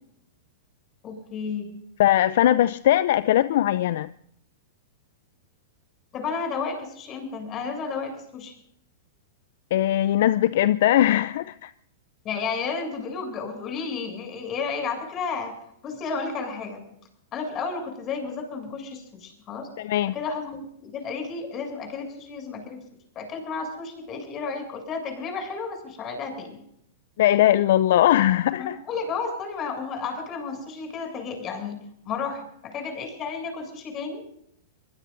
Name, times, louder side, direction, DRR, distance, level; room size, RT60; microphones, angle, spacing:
voice 1, 1.0-1.7 6.1-8.5 12.2-15.6 15.8-16.8 17.3-19.7 20.1-22.8 23.1-26.6 28.6-34.2, left 5 dB, 35° left, 7.9 m, -32 dB
voice 2, 2.0-4.1 9.7-11.7 19.8-20.1 27.2-28.8, left 13 dB, 65° left, 0.5 m, -20 dB
23.5 x 22.0 x 2.7 m
hypercardioid pair, 110°, 0 cm